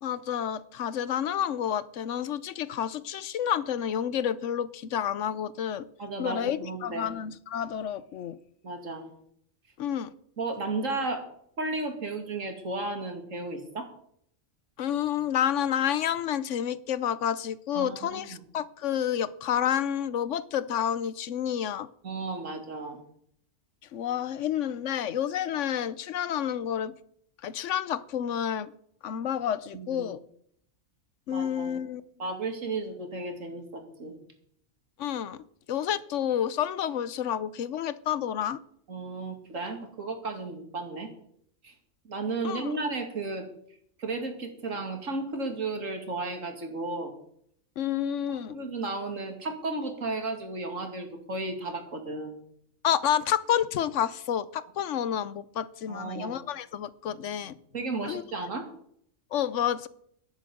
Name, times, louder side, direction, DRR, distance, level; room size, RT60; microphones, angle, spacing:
voice 1, 0.0-5.9 6.2-8.4 9.8-10.1 14.8-21.9 23.9-26.9 27.4-28.7 29.0-30.2 31.3-32.0 35.0-38.6 42.4-42.7 47.8-48.5 52.8-57.6 58.1-58.2 59.3-59.9, left 9 dB, 75° left, 17 dB, 1.0 m, -29 dB
voice 2, 6.0-7.1 8.6-9.1 10.4-11.2 11.6-13.9 17.7-18.4 22.0-23.0 29.7-30.1 31.3-31.8 32.2-34.2 38.9-41.1 41.6-41.7 42.0-43.4 44.0-47.1 48.3-52.4 55.9-56.4 57.7-58.6, right 3 dB, 90° right, 5 dB, 2.7 m, -34 dB
10.5 x 10.0 x 7.8 m, 0.69 s
omnidirectional pair, 1.3 m